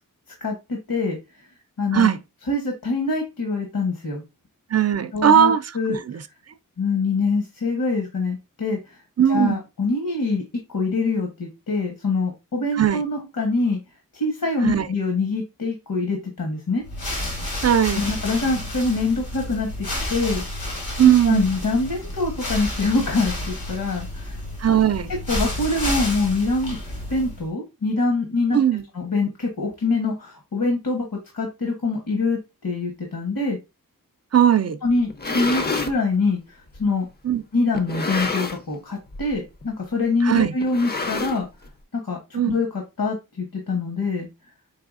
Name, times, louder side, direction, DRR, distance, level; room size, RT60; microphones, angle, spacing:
voice 1, 0.4-1.2 1.8-2.1 2.5-4.2 5.1-6.0 6.8-9.0 9.3-10.4 10.7-13.8 14.1-16.8 18.0-20.4 21.2-24.4 25.3-26.8 27.1-28.6 28.9-31.1 31.3-33.6 34.8-36.4 36.8-37.1 37.5-41.5 41.9-44.3, left 3 dB, 65° left, 1.2 m, -24 dB
voice 2, 4.7-5.6 5.9-6.2 9.2-9.6 12.7-13.0 14.6-14.9 17.6-18.1 21.0-21.5 24.6-25.1 28.5-28.8 34.3-34.8 37.2-37.4 40.2-40.5 42.3-42.6, right 9 dB, 45° right, 0.4 m, -18 dB
sound 1, 16.8-27.5, left 1 dB, 85° left, 2.0 m, -30 dB
sound 2, 35.0-36.0 36.7-36.8 37.7-38.8 39.1-39.4 39.6-39.7 40.6-41.7, left 3 dB, 30° left, 0.5 m, -28 dB
4.7 x 3.4 x 2.4 m
wide cardioid pair, 90°, 35 cm